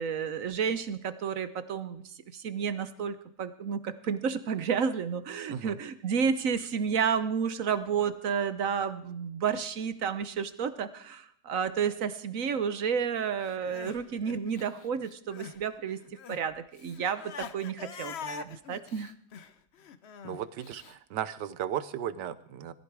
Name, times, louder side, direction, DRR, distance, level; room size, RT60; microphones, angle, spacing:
voice 1, 0.0-2.0 2.3-16.0 16.3-19.1, right 7 dB, 55° right, 12 dB, 1.1 m, -31 dB
voice 2, 5.5-5.8 20.2-22.7, right 10 dB, 70° right, 14 dB, 1.4 m, -35 dB
Crying sobbing, 13.5-15.6 15.9-20.9, left 7 dB, 65° left, 0.6 m, -44 dB
20.0 x 14.5 x 4.8 m, 0.65 s
omnidirectional pair, 2.1 m